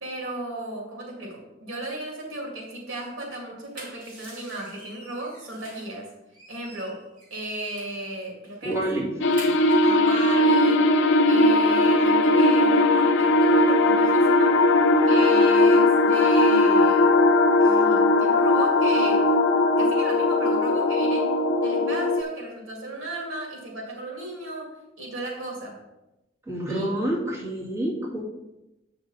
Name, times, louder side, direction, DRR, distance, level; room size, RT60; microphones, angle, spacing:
voice 1, 0.0-6.1 6.5-7.0 7.3-8.8 9.8-10.9 11.2-14.6 15.0-17.1 17.6-19.3 19.8-21.3 21.6-25.8 26.7-26.9, right 2 dB, 75° right, -1 dB, 2.2 m, -35 dB
sound 1, 3.5-6.0 6.3-8.0 8.4-8.6 8.9-9.9, right 2 dB, 45° right, 3.0 m, -45 dB
voice 2, 8.6-9.1 26.5-28.2, right 1 dB, 15° right, -7 dB, 2.3 m, -28 dB
sound 2, 9.2-22.2, left 2 dB, 65° left, 0.5 m, -19 dB
7.8 x 5.9 x 4.1 m, 0.96 s
head